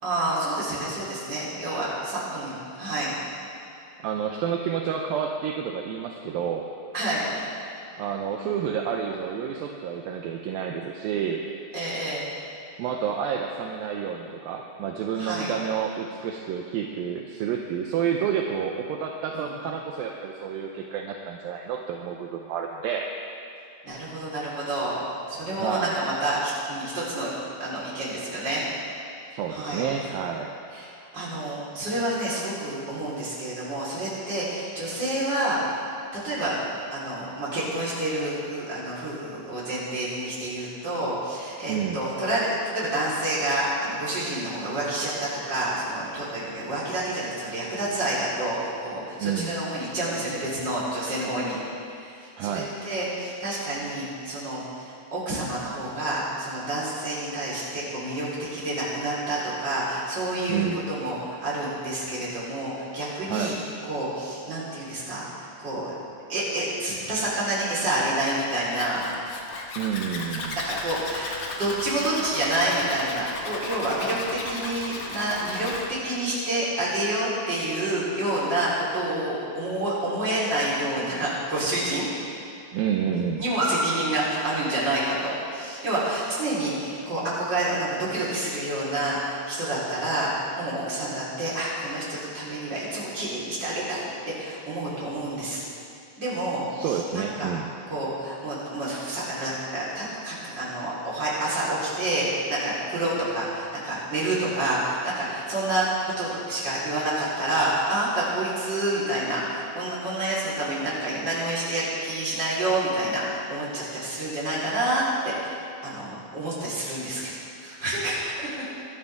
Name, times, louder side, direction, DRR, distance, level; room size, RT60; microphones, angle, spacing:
voice 1, 0.0-3.1 6.9-7.4 11.7-12.2 15.2-15.5 19.3-19.5 23.8-25.0 25.3-27.3 27.6-28.6 29.5-29.9 30.7-35.6 36.1-36.6 36.9-51.6 51.9-63.5 63.9-65.8 66.3-69.1 70.6-82.1 83.4-95.6 96.2-97.5 97.9-115.5 115.8-118.5, right 1 dB, 25° right, -8 dB, 4.3 m, -28 dB
voice 2, 4.0-6.7 8.0-11.4 12.8-23.1 25.6-26.0 29.3-30.5 41.7-42.0 49.2-49.5 52.4-52.7 60.5-60.8 63.3-63.6 69.8-70.6 82.7-83.4 96.7-97.7, right 8 dB, 75° right, 1 dB, 2.2 m, -29 dB
Zipper (clothing), 68.7-75.9, left 3 dB, 65° left, 1.7 m, -35 dB
23.0 x 11.5 x 3.5 m, 2.5 s
omnidirectional pair, 4.8 m